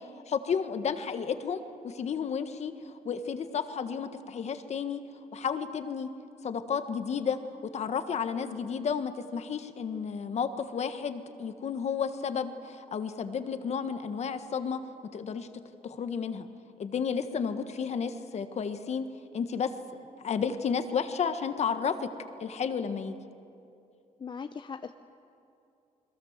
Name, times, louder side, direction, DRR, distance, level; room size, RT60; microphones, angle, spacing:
voice 1, 0.3-5.0 5.3-6.1 6.4-14.8 15.1-15.5 15.8-16.5 16.8-19.1 19.3-19.7 20.2-22.1 22.4-23.2, left 6 dB, 50° left, 9 dB, 1.5 m, -32 dB
voice 2, 24.2-24.9, left 5 dB, 35° left, 8 dB, 0.7 m, -39 dB
29.0 x 21.5 x 7.5 m, 2.7 s
cardioid pair, 110°, 14 cm